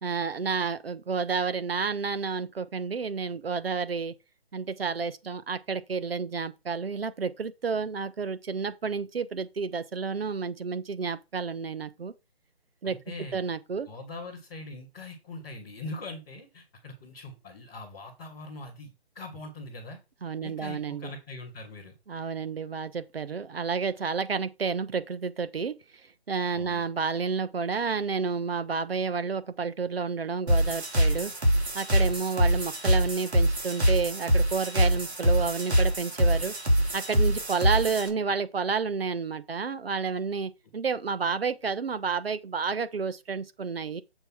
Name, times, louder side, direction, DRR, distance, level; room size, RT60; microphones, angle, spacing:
voice 1, 0.0-4.1 4.5-12.1 12.8-13.0 13.3-13.9 20.2-21.1 22.1-25.8 26.3-31.3 31.7-36.5 36.9-44.0, right 5 dB, 65° right, 1.2 m, -30 dB
voice 2, 12.8-13.4 13.9-20.0 20.4-21.9 26.5-26.9 37.7-37.8, left 2 dB, 5° left, 0.6 m, -42 dB
sound 1, 30.5-38.1, equal, 85° right, 3.2 m, -24 dB
7.0 x 4.5 x 5.8 m
figure-of-eight pair, 160°, 32 cm